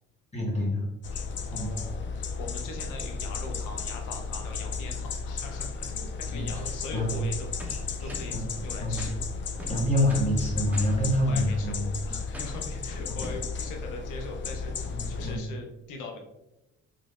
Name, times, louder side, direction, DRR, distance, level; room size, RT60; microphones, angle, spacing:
voice 1, 0.3-0.8 1.1-1.2 1.5-1.7 6.3-6.6 6.9-7.2 7.7-8.4 8.8-9.1 9.7-11.9 14.8-15.4, left 1 dB, 20° left, -4 dB, 1.5 m, -27 dB
sound 1, 1.0-15.4, left 4 dB, 40° left, 0.4 m, -34 dB
voice 2, 1.5-7.5 8.0-9.2 11.3-16.2, left 3 dB, 90° left, 2 dB, 0.6 m, -41 dB
sound 2, 7.6-8.4 9.0-9.2 9.6-10.4 10.7-11.0 12.3-12.7 13.2-13.5, equal, 5° right, 0.7 m, -42 dB
3.8 x 3.1 x 2.4 m, 0.93 s
cardioid pair, 90°, 30 cm